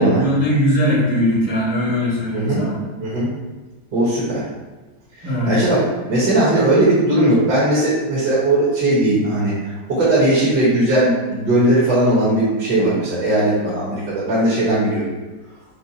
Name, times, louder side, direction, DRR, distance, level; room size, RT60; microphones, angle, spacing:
voice 1, 0.0-2.8 5.2-5.6, equal, 15° right, -6 dB, 0.6 m, -19 dB
voice 2, 2.3-2.7 3.0-3.3 3.9-4.4 5.5-5.8 6.1-15.0, right 1 dB, 65° right, -8 dB, 1.8 m, -18 dB
5.4 x 2.1 x 4.1 m, 1.2 s
omnidirectional pair, 2.0 m